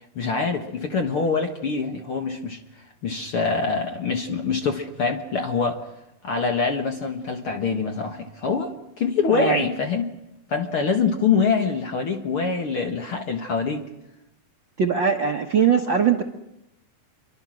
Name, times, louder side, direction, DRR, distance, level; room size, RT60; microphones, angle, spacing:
voice 1, 0.2-2.6 3.0-5.8 6.2-10.1 10.5-13.8, left 5 dB, 50° left, 5 dB, 1.9 m, -24 dB
voice 2, 14.8-16.2, right 7 dB, 60° right, 4 dB, 1.2 m, -21 dB
26.5 x 24.0 x 6.3 m, 0.87 s
omnidirectional pair, 4.1 m